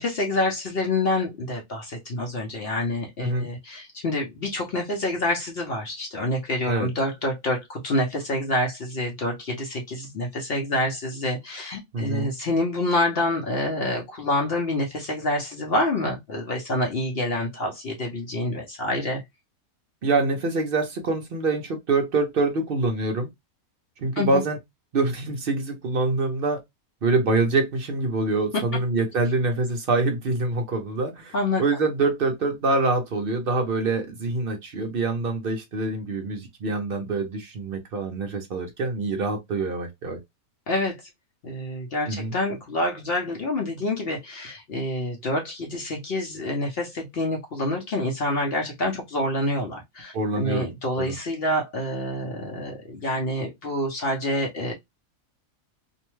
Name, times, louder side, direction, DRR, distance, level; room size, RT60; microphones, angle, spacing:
voice 1, 0.0-19.2 24.2-24.4 31.3-31.6 40.7-41.1 41.4-54.7, left 1 dB, 55° left, 0.7 m, -27 dB
voice 2, 11.9-12.3 20.0-23.3 24.0-24.6 24.9-26.6 27.0-31.3 31.6-40.2 42.1-42.3 50.1-50.7 51.0-51.1, right 3 dB, 55° right, 0.6 m, -25 dB
2.7 x 2.1 x 3.0 m
omnidirectional pair, 1.5 m